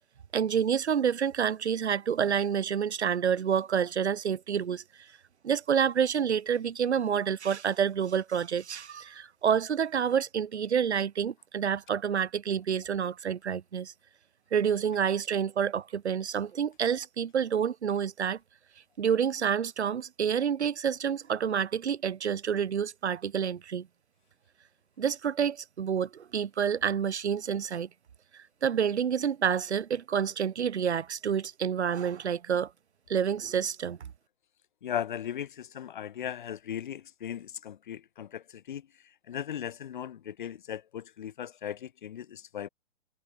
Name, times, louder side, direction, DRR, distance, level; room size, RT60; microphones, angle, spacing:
voice 1, 0.3-4.8 5.4-13.9 14.5-18.4 19.0-23.9 25.0-27.9 28.3-32.7 33.1-34.1, right 8 dB, 60° right, 2.1 m, -28 dB
voice 2, 34.8-38.9 39.3-42.7, left 9 dB, 40° left, 2.5 m, -37 dB
hypercardioid pair, 170°, 37 cm